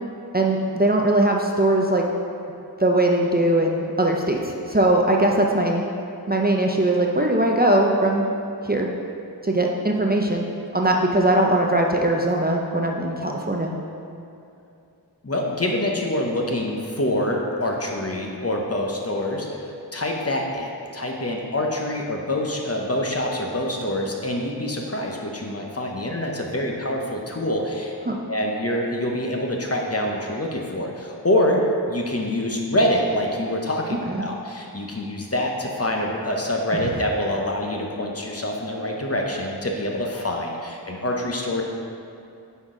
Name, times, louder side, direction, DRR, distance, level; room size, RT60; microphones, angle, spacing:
voice 1, 0.3-2.1 2.8-5.9 6.3-8.3 8.6-8.9 9.4-13.7 28.1-28.2 34.1-34.2, right 1 dB, 25° right, 0 dB, 0.6 m, -20 dB
voice 2, 15.2-19.5 19.9-28.0 28.3-31.6 31.9-41.6, left 1 dB, 35° left, 0 dB, 0.9 m, -25 dB
9.6 x 4.0 x 3.8 m, 2.6 s
wide cardioid pair, 45°, 40 cm